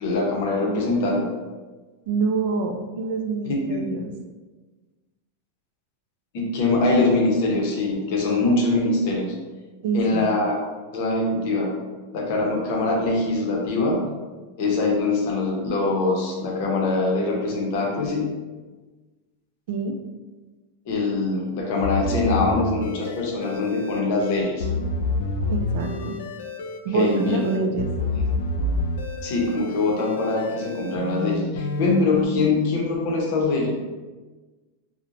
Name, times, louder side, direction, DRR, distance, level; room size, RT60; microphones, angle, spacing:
voice 1, 0.0-1.2 3.5-3.8 6.3-9.3 9.9-10.5 10.9-11.7 12.1-14.0 14.6-18.3 20.9-24.7 26.9-27.4 29.2-33.7, left 3 dB, 50° left, -1 dB, 0.6 m, -23 dB
voice 2, 0.6-0.9 2.1-4.1 9.8-10.3 19.7-19.9 25.5-26.2 26.8-27.9, right 4 dB, 55° right, 4 dB, 0.3 m, -26 dB
sound 1, 21.8-32.3, left 3 dB, 85° left, 0.3 m, -28 dB
2.8 x 2.1 x 2.5 m, 1.3 s
supercardioid pair, 165°, 0 cm